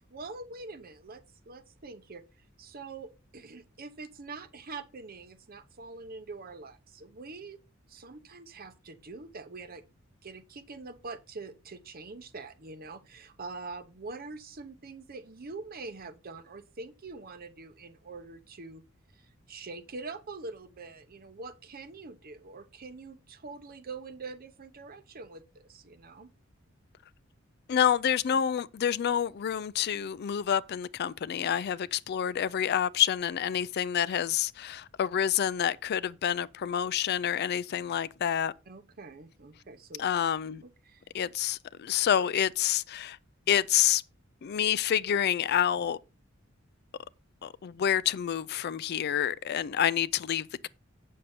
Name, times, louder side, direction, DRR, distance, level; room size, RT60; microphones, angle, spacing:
voice 1, 0.1-2.2 2.6-7.6 7.9-9.8 10.2-18.8 19.1-26.3 38.7-40.0 40.8-41.0, right 3 dB, 45° right, 0.8 m, -44 dB
voice 2, 27.7-38.5 40.0-40.6 41.1-43.2 43.5-44.0 44.4-46.0 47.4-50.7, left 9 dB, 55° left, 0.4 m, -28 dB
8.3 x 6.5 x 4.3 m
head